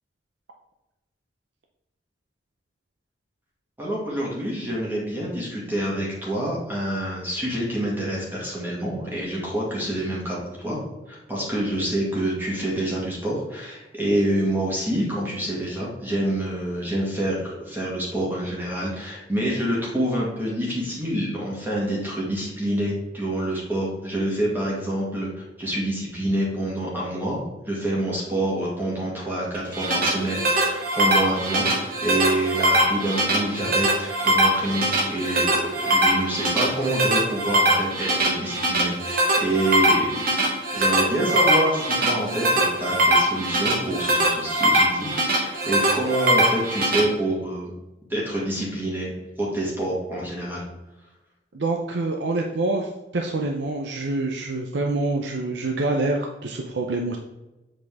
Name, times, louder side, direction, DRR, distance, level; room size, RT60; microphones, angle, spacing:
voice 1, 3.8-10.8 11.1-40.2 40.7-47.7 48.1-49.1 49.4-50.6, right 1 dB, 10° right, -5 dB, 1.9 m, -27 dB
sound 1, 29.5-47.0, right 1 dB, 55° right, 1.7 m, -22 dB
voice 2, 51.5-57.2, right 2 dB, 80° right, 2 dB, 0.6 m, -26 dB
7.8 x 4.3 x 3.5 m, 1.0 s
head